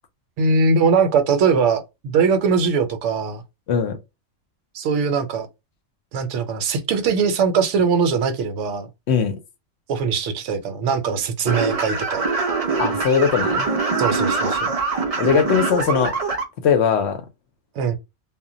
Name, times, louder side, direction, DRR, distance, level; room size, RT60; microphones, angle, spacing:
voice 1, 0.4-3.4 4.7-5.5 6.1-8.9 9.9-12.3 14.0-14.7 17.8-18.0, right 5 dB, 70° right, 0.9 m, -21 dB
voice 2, 9.1-9.4 12.8-13.7 15.2-16.1 16.6-17.2, left 6 dB, 65° left, 0.8 m, -19 dB
sound 1, 11.4-16.4, right 4 dB, 55° right, 0.4 m, -23 dB
2.2 x 2.1 x 3.7 m
omnidirectional pair, 1.3 m